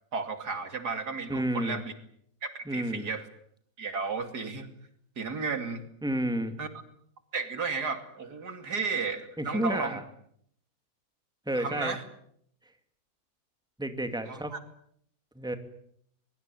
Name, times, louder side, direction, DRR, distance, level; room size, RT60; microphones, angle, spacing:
voice 1, 0.1-1.9 2.4-3.3 3.8-4.7 5.2-5.8 6.6-6.7 7.3-10.0 11.5-12.0 14.2-14.6, right 4 dB, 85° right, 8 dB, 3.1 m, -33 dB
voice 2, 1.3-1.8 2.7-3.1 6.0-6.5 9.4-10.0 11.5-11.9 13.8-14.5 15.3-15.6, right 1 dB, 5° right, 8 dB, 2.4 m, -30 dB
23.5 x 22.5 x 9.3 m, 0.68 s
omnidirectional pair, 1.7 m